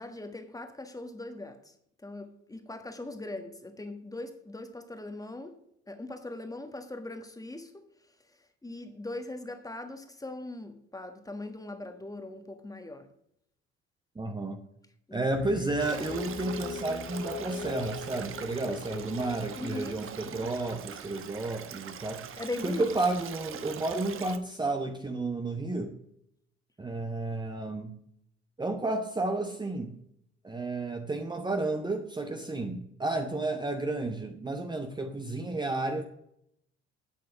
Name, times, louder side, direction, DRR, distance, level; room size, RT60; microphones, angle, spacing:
voice 1, 0.0-1.6 2.0-5.6 5.9-7.7 8.6-13.1 15.1-15.2 18.6-18.8 19.6-20.0 20.2-20.5 22.4-22.9, left 2 dB, 10° left, 1.5 m, -40 dB
voice 2, 14.2-14.6 15.1-22.3 22.6-25.9 26.8-27.9 28.6-29.9 30.4-36.0, right 2 dB, 15° right, 1.0 m, -32 dB
sound 1, 15.3-20.5, left 7 dB, 35° left, 0.8 m, -41 dB
Stream, 15.8-24.4, right 8 dB, 40° right, 1.0 m, -42 dB
8.4 x 8.2 x 6.1 m
figure-of-eight pair, 55°, 33 cm